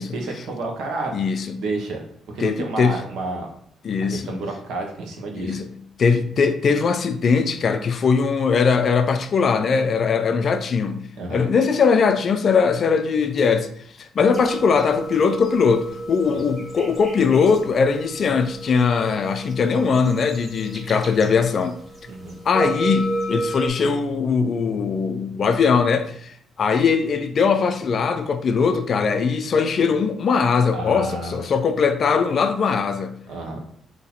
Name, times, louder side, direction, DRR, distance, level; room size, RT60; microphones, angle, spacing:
voice 1, 0.0-1.1 1.6-2.0 2.3-3.5 4.1-5.6 11.2-11.5 16.3-16.4 22.0-22.4 30.7-31.4 33.3-33.6, right 2 dB, 85° right, 1.1 m, -30 dB
voice 2, 1.1-1.6 2.4-2.9 3.8-4.4 5.3-5.7 6.0-13.7 14.0-21.8 22.5-33.2, left 5 dB, 45° left, 0.4 m, -20 dB
sound 1, 14.3-23.7, right 1 dB, 15° right, 0.9 m, -32 dB
4.1 x 2.8 x 4.2 m
cardioid pair, 150°, 0 cm